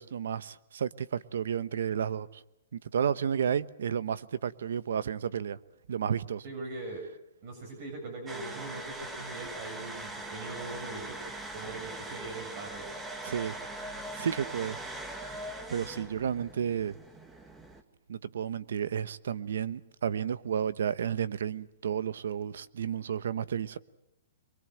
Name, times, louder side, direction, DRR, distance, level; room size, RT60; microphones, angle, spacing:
voice 1, 0.0-2.4 2.7-5.6 5.9-6.4 13.2-13.5 14.2-14.8 15.2-16.9 18.1-23.8, right 8 dB, 75° right, 1.1 m, -32 dB
voice 2, 6.4-7.0 7.4-11.2 11.5-12.8, right 3 dB, 45° right, 6.7 m, -41 dB
sound 1, 8.3-17.8, right 1 dB, 10° right, 1.7 m, -41 dB
24.0 x 23.5 x 7.8 m
hypercardioid pair, 150°, 0 cm